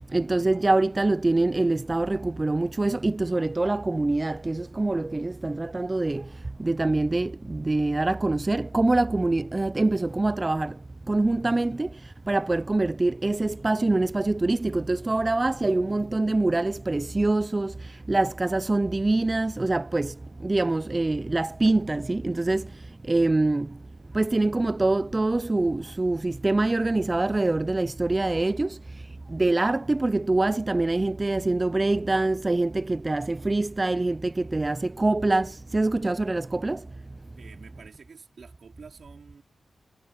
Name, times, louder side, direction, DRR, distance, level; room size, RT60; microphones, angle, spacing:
voice 1, 0.1-10.8 11.1-23.8 24.1-29.0 29.3-36.9, right 2 dB, 30° right, 0.3 m, -25 dB
voice 2, 37.4-39.4, right 5 dB, 70° right, 4.2 m, -48 dB
cardioid pair, 65°, 0 cm